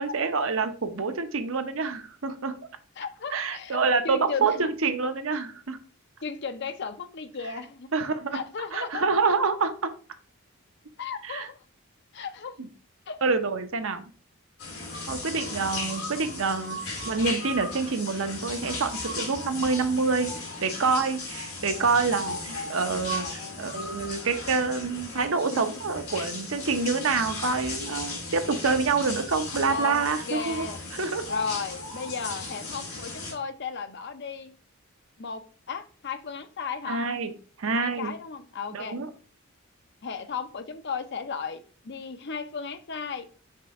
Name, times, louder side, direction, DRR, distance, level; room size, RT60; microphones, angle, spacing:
voice 1, 0.0-2.6 3.3-5.8 7.9-8.4 8.7-9.7 11.2-11.5 12.6-12.7 13.2-14.1 15.1-20.3 20.6-23.3 23.6-30.7 30.9-31.2 36.9-37.3 37.6-38.1 38.7-39.1, right 4 dB, 65° right, 0.8 m, -27 dB
voice 2, 3.0-4.7 6.2-7.9 8.3-9.1 11.0-11.6 12.1-12.6 13.1-13.2 15.2-15.7 23.1-23.8 25.5-25.8 29.7-30.8 31.3-34.5 35.2-37.0 37.7-39.0 40.0-43.3, left 5 dB, 50° left, 0.6 m, -35 dB
sound 1, 14.6-33.3, left 2 dB, 90° left, 2.6 m, -36 dB
5.3 x 3.4 x 5.2 m
head